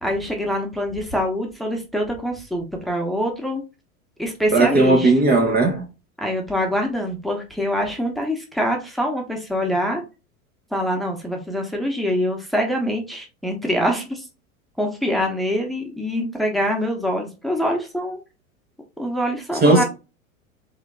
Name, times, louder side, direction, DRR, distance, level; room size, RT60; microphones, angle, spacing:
voice 1, 0.0-3.6 4.2-5.1 6.2-10.0 10.7-14.2 14.8-18.2 19.0-19.8, equal, ahead, 1.2 m, -24 dB
voice 2, 4.5-5.9 19.6-19.8, right 2 dB, 20° right, 1.0 m, -16 dB
3.7 x 3.7 x 3.8 m
hypercardioid pair, 95°, 42 cm